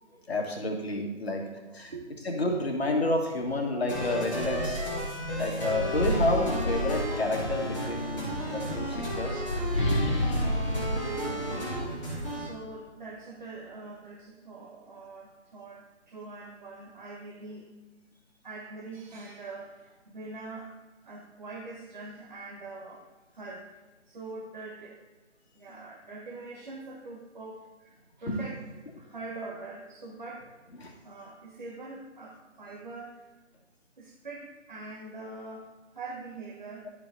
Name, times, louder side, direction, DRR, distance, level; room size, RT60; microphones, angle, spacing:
voice 1, 0.3-1.9 2.2-4.9 5.4-9.5 25.7-25.8 28.3-28.5 30.8-30.9, left 2 dB, 55° left, 1 dB, 1.6 m, -30 dB
sound 1, 3.4-3.5 3.9-7.6 8.5-12.1, left 1 dB, 25° left, 1.0 m, -31 dB
sound 2, 3.9-12.5, equal, 10° left, 2.0 m, -33 dB
voice 2, 11.3-17.7 18.4-20.8 21.0-23.0 23.3-25.0 25.5-28.6 29.0-30.5 31.0-33.3 34.0-36.9, right 3 dB, 40° right, -2 dB, 0.9 m, -43 dB
12.5 x 5.2 x 2.7 m, 1.3 s
figure-of-eight pair, 155°, 38 cm